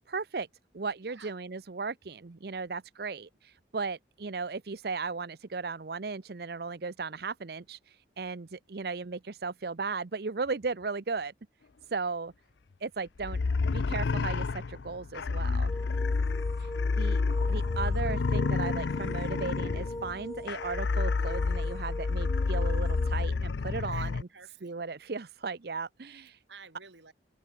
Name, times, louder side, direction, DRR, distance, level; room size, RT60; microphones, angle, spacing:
voice 1, 0.1-0.5 0.7-11.3 11.9-12.3 12.8-13.4 13.7-15.7 16.6-17.2 17.5-24.1 24.6-26.4, right 4 dB, 60° right, 0.7 m, -36 dB
voice 2, 1.0-1.3 23.9-24.7 26.5-27.1, right 5 dB, 85° right, 4.6 m, -51 dB
sound 1, 13.2-24.2, left 4 dB, 80° left, 0.5 m, -29 dB
sound 2, 15.7-23.2, left 1 dB, 20° left, 1.6 m, -42 dB
open air
head